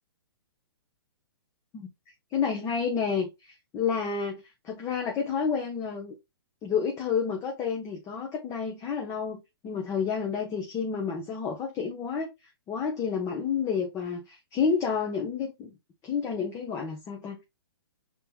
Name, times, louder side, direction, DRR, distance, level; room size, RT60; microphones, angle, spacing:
voice 1, 2.3-6.1 6.6-12.3 12.7-15.7 16.0-17.4, left 6 dB, 20° left, 0.9 m, -30 dB
5.6 x 3.6 x 2.3 m
figure-of-eight pair, 125°, 13 cm